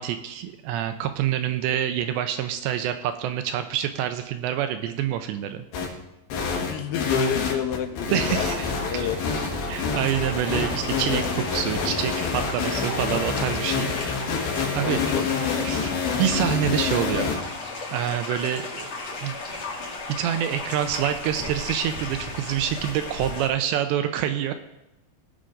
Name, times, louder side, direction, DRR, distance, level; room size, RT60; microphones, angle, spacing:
voice 1, 0.0-5.7 8.1-13.9 14.2-14.3 14.7-15.0 15.6-15.9 16.2-17.6 17.9-18.9 19.2-19.4 20.2-24.5, right 10 dB, 85° right, 8 dB, 2.6 m, -27 dB
sound 1, 5.7-5.9 6.3-17.4, left 5 dB, 65° left, 3.2 m, -27 dB
voice 2, 6.4-9.2 14.8-15.2, left 8 dB, 85° left, 9 dB, 3.0 m, -29 dB
sound 2, 10.0-23.5, left 3 dB, 45° left, 2.4 m, -35 dB
17.5 x 6.2 x 3.8 m, 0.93 s
omnidirectional pair, 5.3 m